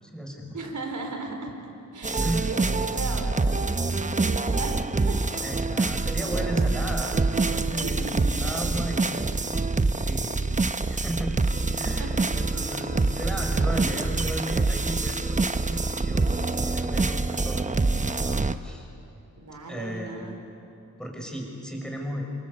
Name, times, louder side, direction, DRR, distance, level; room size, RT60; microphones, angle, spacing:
voice 1, 0.0-0.6 2.2-2.6 5.4-8.0 8.4-9.4 10.0-10.3 10.9-11.5 11.8-18.9 19.5-20.4 21.0-22.2, equal, ahead, 1 dB, 5.8 m, -35 dB
voice 2, 0.5-1.5 1.9-5.2 6.2-6.4 7.8-8.5 10.3-10.6 12.0-12.3 13.9-14.1 19.3-20.3, right 3 dB, 65° right, 3 dB, 4.6 m, -37 dB
sound 1, 2.0-18.6, right 3 dB, 25° right, 0.9 m, -26 dB
27.0 x 23.5 x 8.3 m, 2.7 s
wide cardioid pair, 90°, 32 cm